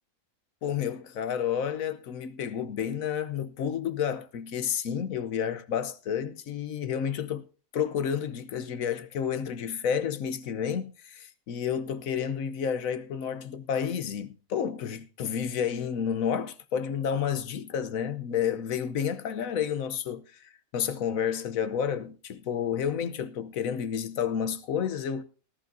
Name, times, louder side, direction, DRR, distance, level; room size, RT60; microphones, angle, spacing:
voice 1, 0.6-7.5 7.7-25.2, left 8 dB, 80° left, 1.3 m, -30 dB
18.5 x 12.0 x 2.6 m
omnidirectional pair, 1.4 m